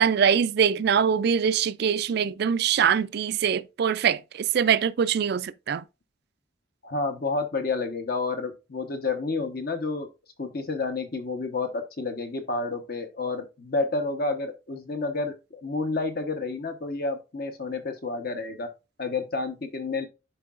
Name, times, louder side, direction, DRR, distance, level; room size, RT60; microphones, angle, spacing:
voice 1, 0.0-5.8, right 7 dB, 55° right, 0.3 m, -23 dB
voice 2, 6.8-10.1 10.4-18.7 19.0-20.1, left 3 dB, 50° left, 1.0 m, -30 dB
11.0 x 4.6 x 2.4 m
head